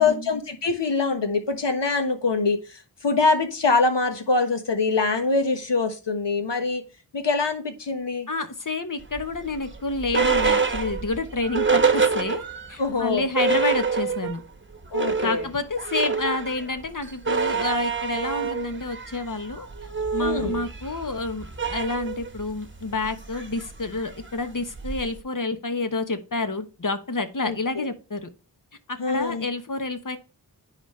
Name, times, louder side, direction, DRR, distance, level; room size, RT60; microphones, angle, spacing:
voice 1, 0.0-6.8 7.1-8.3 12.8-13.3 14.9-15.4 20.2-20.6 27.4-27.9 29.0-29.5, left 3 dB, 75° left, 1.4 m, -24 dB
voice 2, 8.3-12.4 12.7-14.4 15.2-19.7 20.1-28.3 28.9-30.2, left 3 dB, 45° left, 1.1 m, -29 dB
sound 1, 9.1-12.8 13.1-13.2 13.3-14.4 14.7-25.2, right 5 dB, 25° right, 1.1 m, -26 dB
10.0 x 4.1 x 3.2 m
wide cardioid pair, 45°, 44 cm